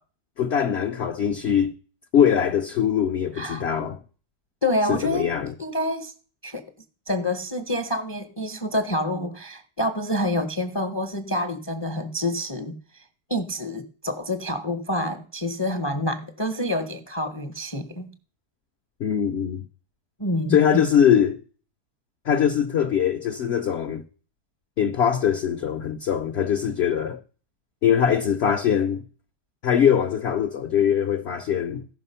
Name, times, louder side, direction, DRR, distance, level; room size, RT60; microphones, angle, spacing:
voice 1, 0.4-1.7 2.1-4.0 4.9-5.5 19.0-19.6 20.5-21.4 22.2-24.0 24.8-27.2 27.8-29.0 29.6-31.9, left 8 dB, 60° left, 0.7 m, -22 dB
voice 2, 4.6-6.1 6.4-6.6 7.1-18.1 20.2-20.8, left 1 dB, 25° left, 0.5 m, -27 dB
15.0 x 5.7 x 5.5 m
omnidirectional pair, 1.7 m